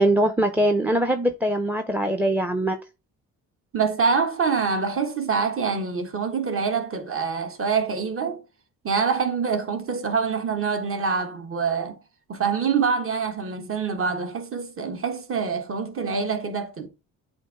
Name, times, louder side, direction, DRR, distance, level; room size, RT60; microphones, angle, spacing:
voice 1, 0.0-2.8, right 1 dB, 5° right, 0.7 m, -22 dB
voice 2, 3.7-8.4 8.8-12.0 12.3-16.9, right 5 dB, 40° right, 1.3 m, -25 dB
8.0 x 2.7 x 4.6 m
supercardioid pair, 70°, 35 cm